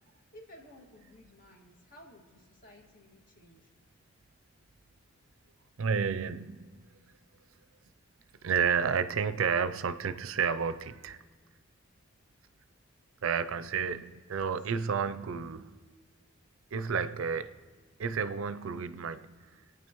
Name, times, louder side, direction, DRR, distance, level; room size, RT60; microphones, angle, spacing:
voice 1, 0.3-3.7 13.5-14.0 14.7-14.9, left 1 dB, 40° left, 0 dB, 2.0 m, -55 dB
voice 2, 5.8-6.8 8.4-11.2 13.2-15.8 16.7-17.5 18.0-19.6, right 6 dB, 75° right, 12 dB, 0.5 m, -31 dB
26.5 x 9.2 x 3.0 m, 1.5 s
head